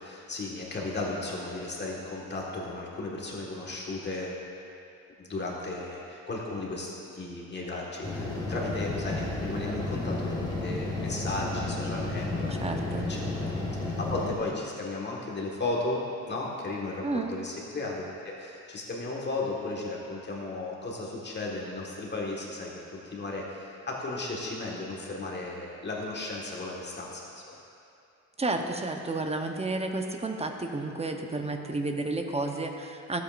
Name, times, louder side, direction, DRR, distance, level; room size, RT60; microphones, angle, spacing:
voice 1, 0.0-4.4 5.2-12.7 13.1-27.5, left 2 dB, 35° left, -3 dB, 1.7 m, -35 dB
sound 1, 8.0-14.3, left 2 dB, 15° left, 1.6 m, -32 dB
voice 2, 12.5-13.1 17.0-17.4 28.4-33.2, right 2 dB, 20° right, 4 dB, 0.9 m, -31 dB
15.5 x 8.2 x 2.6 m, 2.6 s
cardioid pair, 90°, 30 cm